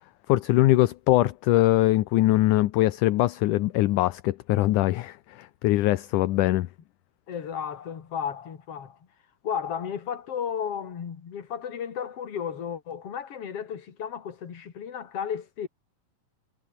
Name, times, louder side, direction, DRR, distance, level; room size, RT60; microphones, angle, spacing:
voice 1, 0.3-6.7, left 16 dB, 70° left, 2.1 m, -22 dB
voice 2, 7.3-9.0 9.4-15.7, left 8 dB, 45° left, 3.1 m, -33 dB
omnidirectional pair, 4.2 m